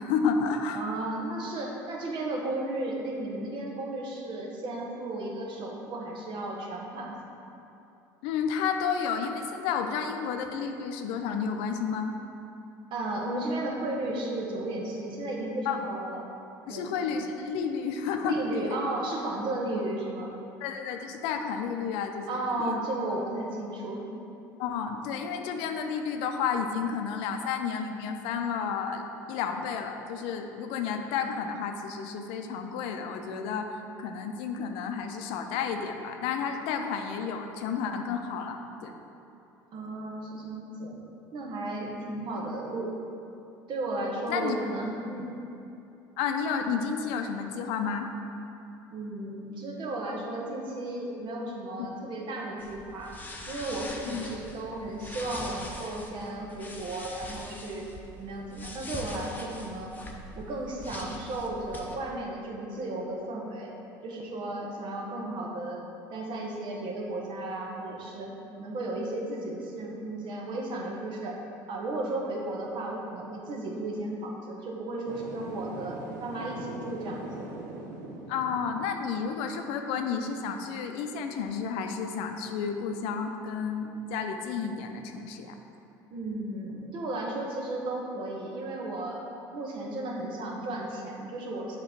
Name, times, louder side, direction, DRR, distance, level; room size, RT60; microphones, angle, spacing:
voice 1, 0.0-0.8 8.2-12.1 15.7-15.8 16.7-18.8 20.6-22.8 24.6-33.7 34.0-38.9 44.3-44.6 46.2-48.1 51.8-51.9 54.1-54.3 78.3-85.6, left 6 dB, 70° left, 5 dB, 0.5 m, -31 dB
voice 2, 0.7-7.1 12.9-16.2 16.7-16.9 18.2-20.3 22.3-24.0 39.7-41.0 41.3-42.9 43.7-45.3 48.9-53.1 53.5-57.9 58.2-59.9 60.3-63.7 64.0-65.8 66.1-68.3 68.6-71.4 71.7-77.5 86.1-89.2 89.5-91.8, right 2 dB, 55° right, -1 dB, 1.1 m, -34 dB
sound 1, 52.6-61.9, left 1 dB, 20° left, 0.8 m, -43 dB
sound 2, 75.1-79.3, right 2 dB, 85° right, 0.8 m, -42 dB
7.1 x 3.0 x 5.2 m, 2.8 s
hypercardioid pair, 80°, 10 cm